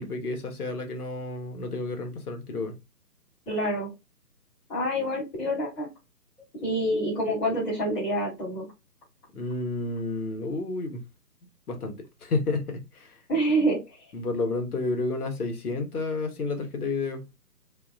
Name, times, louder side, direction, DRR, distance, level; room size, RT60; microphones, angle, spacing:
voice 1, 0.0-2.7 9.3-11.0 11.7-11.9 12.2-13.2 14.1-17.2, left 3 dB, 65° left, 1.3 m, -30 dB
voice 2, 3.5-3.9 4.7-5.9 6.6-8.7 13.3-13.8, right 1 dB, 5° left, 1.0 m, -26 dB
3.6 x 2.8 x 2.6 m
hypercardioid pair, 160°, 49 cm